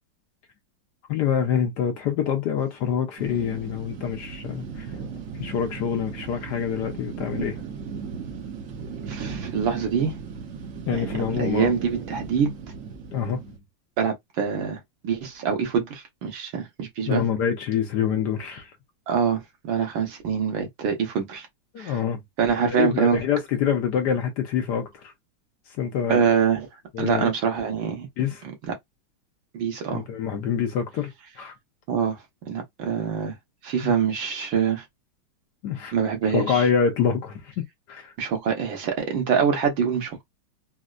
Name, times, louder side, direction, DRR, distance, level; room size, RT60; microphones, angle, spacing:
voice 1, 1.1-4.9 5.4-7.6 10.9-11.7 13.1-13.6 17.1-18.7 21.7-22.2 22.6-25.1 25.8-26.2 26.9-27.3 28.2-28.4 29.9-31.1 31.4-31.5 33.8-33.9 35.6-35.9 36.3-38.1, left 8 dB, 70° left, 1.1 m, -26 dB
sound 1, 3.2-13.6, right 6 dB, 60° right, 0.9 m, -36 dB
voice 2, 9.1-10.2 10.9-12.5 14.0-17.2 19.1-21.5 21.8-22.0 22.4-23.2 26.1-26.7 27.0-28.1 29.5-30.0 31.9-32.2 32.5-33.3 33.6-34.8 35.9-36.7 38.2-40.2, right 7 dB, 75° right, 1.8 m, -25 dB
4.2 x 2.0 x 2.4 m
omnidirectional pair, 2.2 m